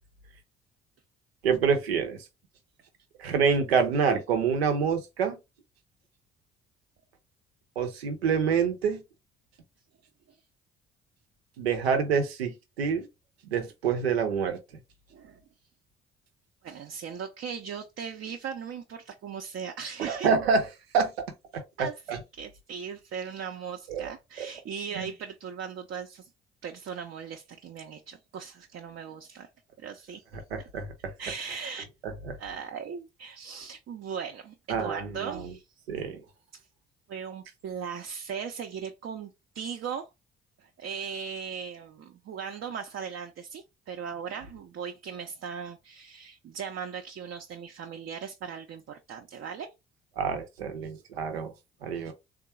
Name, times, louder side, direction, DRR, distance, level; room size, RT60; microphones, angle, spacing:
voice 1, 1.4-2.3 3.2-5.4 7.8-9.0 11.6-13.1 13.4-14.6 20.0-20.7 20.9-21.1 21.5-22.2 23.9-24.1 24.4-24.5 24.9-25.1 30.5-30.9 32.2-32.3 34.7-35.5 35.9-36.2 50.2-51.5 51.8-52.1, right 6 dB, 85° right, 0.7 m, -27 dB
voice 2, 16.6-20.3 21.8-26.3 26.6-29.5 29.8-30.2 31.2-31.9 32.4-35.8 36.5-36.7 37.1-40.1 40.6-49.7 52.1-52.2, right 7 dB, 45° right, 0.6 m, -38 dB
3.6 x 2.0 x 4.1 m
figure-of-eight pair, 50°, 30 cm